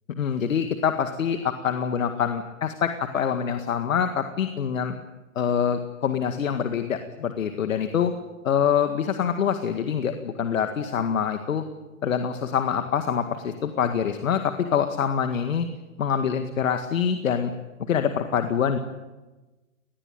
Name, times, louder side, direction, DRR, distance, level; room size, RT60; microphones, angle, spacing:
voice 1, 0.2-5.0 5.4-8.1 8.4-11.6 12.0-15.7 16.0-17.5 17.9-18.8, left 7 dB, 75° left, 7 dB, 2.0 m, -25 dB
22.5 x 20.0 x 9.4 m, 1.2 s
hypercardioid pair, 135°, 40 cm